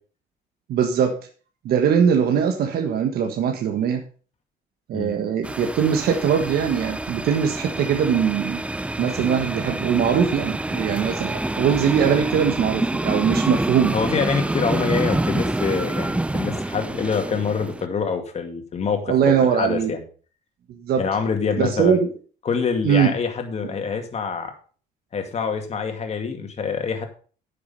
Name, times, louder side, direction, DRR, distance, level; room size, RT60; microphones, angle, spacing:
voice 1, 0.7-1.2 1.6-4.0 4.9-8.6 9.0-13.9 19.1-19.9 20.7-21.0 21.6-22.1 22.8-23.1, right 7 dB, 65° right, 4 dB, 1.5 m, -21 dB
sound 1, 5.4-17.9, right 2 dB, 5° right, 0.5 m, -27 dB
voice 2, 13.9-20.0 21.0-22.0 22.4-24.5 25.1-27.1, left 5 dB, 40° left, 5 dB, 2.2 m, -25 dB
9.8 x 6.8 x 5.4 m, 0.40 s
cardioid pair, 110°, 17 cm